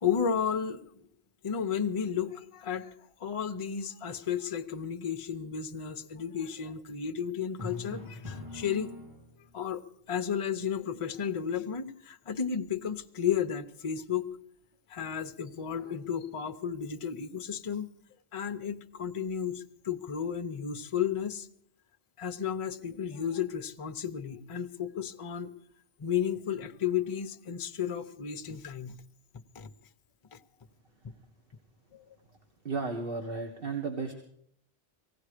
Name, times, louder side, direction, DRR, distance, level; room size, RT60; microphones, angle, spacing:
voice 1, 0.0-1.1 1.4-2.9 3.2-8.9 9.5-9.8 10.1-14.3 14.9-17.9 18.3-21.5 22.2-25.5 26.0-29.0 29.5-29.7 30.3-30.4 31.9-32.1, left 8 dB, 35° left, 9 dB, 0.6 m, -33 dB
Drum, 7.6-9.6, left 2 dB, 15° right, 2.5 m, -41 dB
voice 2, 32.6-34.1, right 4 dB, 50° right, 3 dB, 1.6 m, -34 dB
18.0 x 15.5 x 4.9 m, 0.67 s
omnidirectional pair, 1.2 m